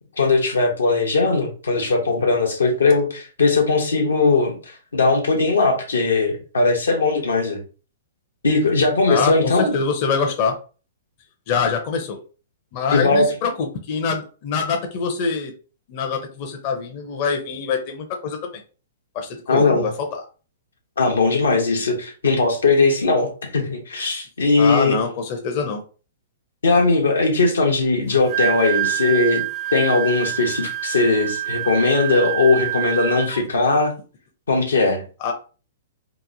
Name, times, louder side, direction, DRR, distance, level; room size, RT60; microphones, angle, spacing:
voice 1, 0.2-7.6 8.4-9.8 12.9-13.3 19.5-19.9 21.0-25.0 26.6-29.4 29.7-33.9 34.5-35.0, left 3 dB, 85° left, 2 dB, 0.7 m, -19 dB
voice 2, 9.1-10.5 11.5-12.2 12.7-15.5 15.9-18.5 19.1-20.2 24.6-25.8 35.2-35.3, left 5 dB, 45° left, 3 dB, 0.5 m, -24 dB
Wind instrument woodwind instrument, 28.1-33.4, right 14 dB, 30° right, 0.3 m, -26 dB
2.9 x 2.1 x 2.5 m, 0.36 s
hypercardioid pair, 125°, 0 cm